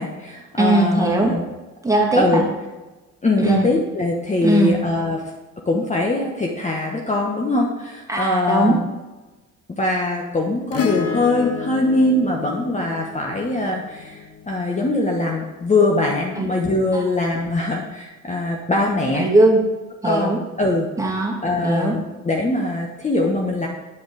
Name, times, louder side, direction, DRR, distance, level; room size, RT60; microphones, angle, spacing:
voice 1, 0.0-1.4 2.2-2.4 3.2-5.2 5.7-8.8 9.7-19.3 20.0-20.9 21.4-23.7, left 2 dB, 20° left, 0 dB, 1.1 m, -22 dB
voice 2, 0.6-1.3 1.8-2.4 3.4-3.7 4.4-4.8 8.1-8.8 16.4-16.5 16.9-17.0 19.1-19.6 20.0-20.4 21.0-21.4 21.6-21.9, right 2 dB, 10° right, -1 dB, 2.1 m, -19 dB
Acoustic guitar / Strum, 10.7-15.3 17.2-17.3, left 6 dB, 50° left, 1.0 m, -31 dB
8.4 x 5.1 x 4.7 m, 1.2 s
supercardioid pair, 70°, 33 cm